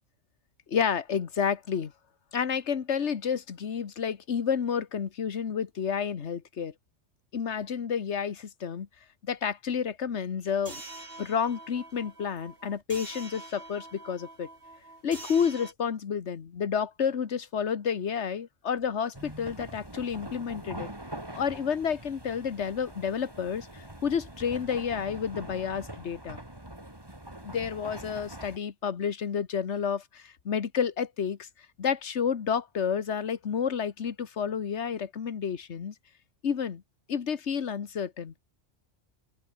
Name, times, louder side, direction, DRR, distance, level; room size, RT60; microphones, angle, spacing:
voice 1, 0.7-1.9 2.3-6.7 7.3-8.9 9.2-10.8 11.2-14.5 15.0-20.9 21.4-26.4 27.4-31.5 31.8-35.9 36.4-36.8 37.1-38.3, left 7 dB, 65° left, 1.5 m, -30 dB
sound 1, 10.7-15.7, right 2 dB, 50° right, 4.0 m, -45 dB
sound 2, 19.1-28.6, right 1 dB, 20° right, 3.4 m, -43 dB
open air
omnidirectional pair, 1.3 m